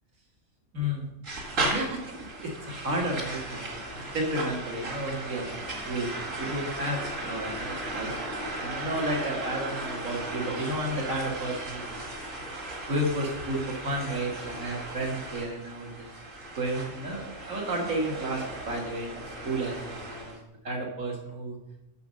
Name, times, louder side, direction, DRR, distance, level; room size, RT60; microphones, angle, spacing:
voice 1, 0.7-1.1 1.6-12.0 12.9-16.1 16.6-19.2 19.4-20.3 20.6-21.6, right 1 dB, 90° right, -1 dB, 2.4 m, -32 dB
sound 1, 1.2-20.4, right 2 dB, 70° right, 2.5 m, -36 dB
8.3 x 6.7 x 6.4 m, 0.87 s
omnidirectional pair, 1.4 m